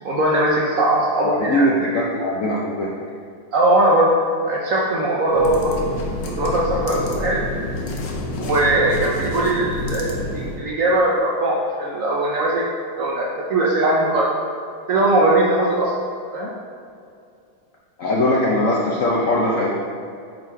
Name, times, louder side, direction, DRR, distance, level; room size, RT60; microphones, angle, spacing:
voice 1, 0.0-1.7 3.5-4.1 4.4-5.7 6.3-7.5 8.4-12.7 13.0-14.3 14.9-16.0 16.3-16.5, right 1 dB, 90° right, -3 dB, 0.7 m, -20 dB
voice 2, 1.2-2.9 18.0-19.7, left 1 dB, 90° left, -4 dB, 0.7 m, -20 dB
sound 1, 5.3-10.6, left 1 dB, 65° left, 1.3 m, -28 dB
7.5 x 4.0 x 4.6 m, 2.4 s
omnidirectional pair, 2.3 m